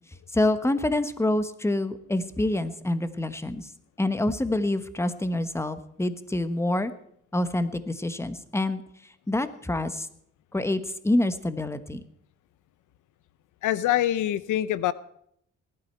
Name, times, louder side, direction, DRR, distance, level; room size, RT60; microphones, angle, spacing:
voice 1, 0.3-3.6 4.0-6.9 7.3-8.8 9.3-10.1 10.5-12.0, left 1 dB, 10° left, 11 dB, 1.2 m, -26 dB
voice 2, 13.6-14.9, left 13 dB, 80° left, 16 dB, 0.8 m, -24 dB
18.5 x 12.0 x 4.6 m, 0.70 s
cardioid pair, 90°, 30 cm